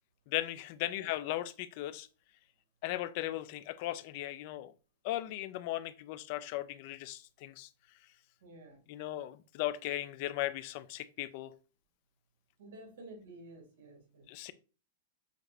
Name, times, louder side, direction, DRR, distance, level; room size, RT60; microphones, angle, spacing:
voice 1, 0.3-2.1 2.8-4.7 5.0-7.7 8.9-11.5 14.3-14.5, left 15 dB, 40° left, 0.3 m, -37 dB
voice 2, 8.4-8.8 12.6-14.3, right 2 dB, 75° right, 2.1 m, -52 dB
6.4 x 2.5 x 3.2 m
supercardioid pair, 170°, 0 cm